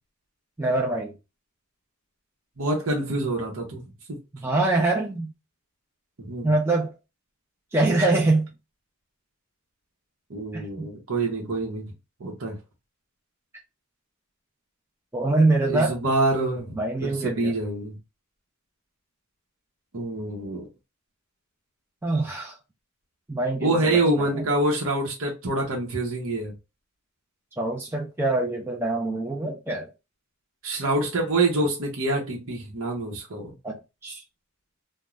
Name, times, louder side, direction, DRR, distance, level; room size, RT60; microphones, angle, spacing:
voice 1, 0.6-1.1 4.4-5.3 6.4-6.9 7.7-8.5 10.5-10.9 15.1-16.0 16.8-17.5 22.0-22.5 23.3-23.8 24.3-24.4 27.6-29.9 33.6-33.7 34.0-34.2, right 2 dB, 10° right, 0.5 m, -24 dB
voice 2, 2.6-3.8 4.1-4.2 6.2-6.5 10.3-11.9 12.2-12.6 15.6-18.0 19.9-20.7 23.6-26.5 30.6-33.5, right 2 dB, 75° right, 0.9 m, -26 dB
2.4 x 2.2 x 3.1 m
head